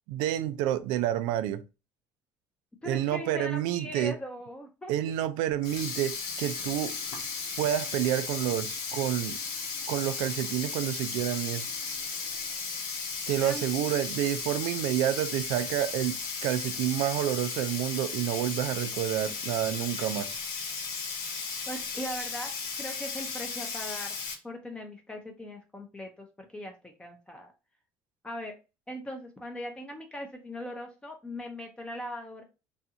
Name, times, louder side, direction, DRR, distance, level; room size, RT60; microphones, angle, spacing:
voice 1, 0.1-1.6 2.8-4.2 4.9-6.9 7.6-9.4 9.9-11.7 13.3-20.4, right 12 dB, 80° right, 0.3 m, -29 dB
voice 2, 2.8-4.9 13.4-13.7 21.7-24.2 24.4-26.3 26.5-27.5 28.2-28.6 28.9-32.4, equal, 15° left, 0.5 m, -39 dB
Sink (filling or washing), 5.6-24.3, left 5 dB, 75° left, 0.8 m, -35 dB
2.6 x 2.3 x 2.7 m
cardioid pair, 105°, 7 cm